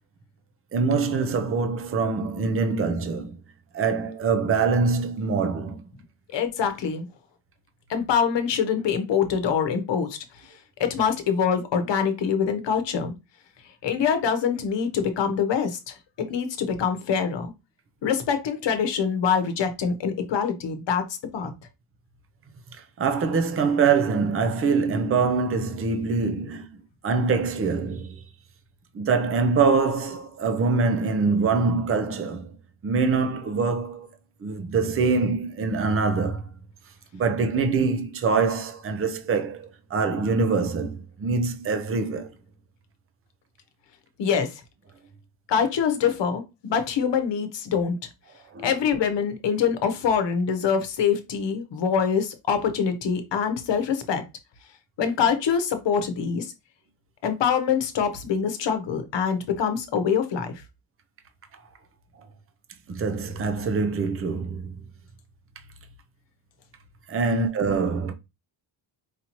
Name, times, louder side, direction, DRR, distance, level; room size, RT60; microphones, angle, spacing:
voice 1, 0.7-3.4 3.7-5.8 23.0-26.7 27.0-28.2 28.9-32.5 32.8-34.1 34.4-36.5 37.1-42.3 48.5-48.7 62.9-64.8 67.1-68.1, right 4 dB, 30° right, 0.6 m, -24 dB
voice 2, 6.3-7.1 7.9-10.5 10.8-13.1 13.8-17.5 18.0-21.0 21.3-21.5 44.2-44.6 45.5-48.1 48.6-54.2 55.0-56.5 57.2-60.5, left 7 dB, 60° left, 1.0 m, -24 dB
4.8 x 2.8 x 2.9 m
cardioid pair, 120°, 48 cm